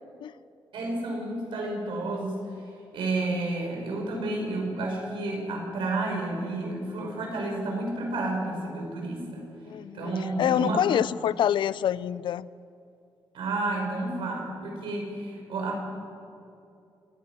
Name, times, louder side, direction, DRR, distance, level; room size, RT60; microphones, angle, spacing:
voice 1, 0.7-2.4 2.9-9.5 9.9-10.8 13.3-15.8, right 2 dB, 90° right, 0 dB, 5.7 m, -31 dB
voice 2, 9.7-10.1 10.4-12.5, left 10 dB, 75° left, 19 dB, 0.5 m, -26 dB
27.0 x 10.5 x 9.8 m, 2.5 s
wide cardioid pair, 135°, 8 cm